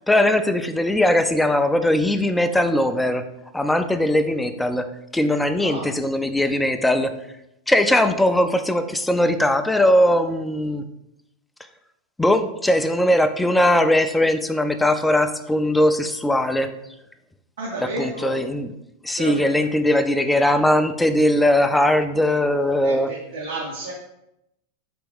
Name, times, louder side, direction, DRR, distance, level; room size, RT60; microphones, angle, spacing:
voice 1, 0.1-3.2 3.5-4.9 5.1-7.1 7.7-10.8 12.2-16.7 18.0-18.7 19.0-23.1, left 1 dB, 5° left, 8 dB, 0.4 m, -20 dB
voice 2, 5.6-5.9 17.6-18.4 19.2-19.6 22.8-23.9, right 2 dB, 85° right, -3 dB, 0.9 m, -31 dB
4.1 x 3.4 x 3.5 m, 0.84 s
hypercardioid pair, 110°, 0 cm